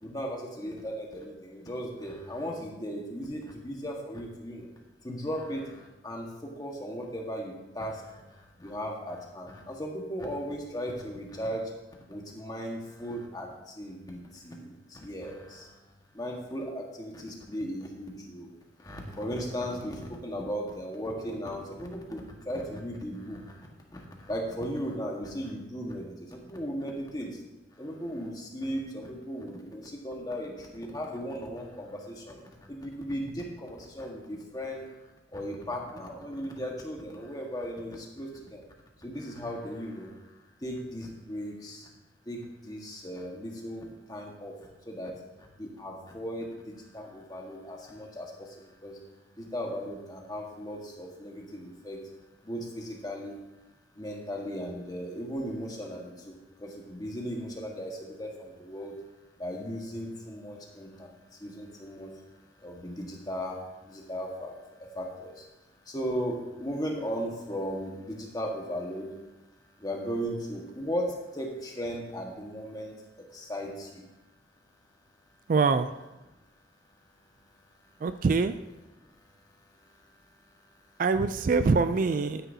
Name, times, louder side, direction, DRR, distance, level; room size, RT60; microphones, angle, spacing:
voice 1, 0.0-4.7 5.0-11.6 12.1-15.8 16.1-18.5 18.8-23.6 23.9-27.4 27.7-38.6 39.0-40.3 40.6-41.9 42.2-44.5 44.8-45.1 45.4-49.0 49.4-52.0 52.4-53.4 53.9-58.9 59.4-62.1 62.6-65.5 65.8-69.1 69.8-74.0 78.9-79.0, equal, 20° left, 0 dB, 1.5 m, -37 dB
voice 2, 75.5-75.9 78.0-78.5 81.0-82.4, right 4 dB, 45° right, 11 dB, 0.3 m, -24 dB
12.0 x 9.8 x 2.8 m, 1.0 s
head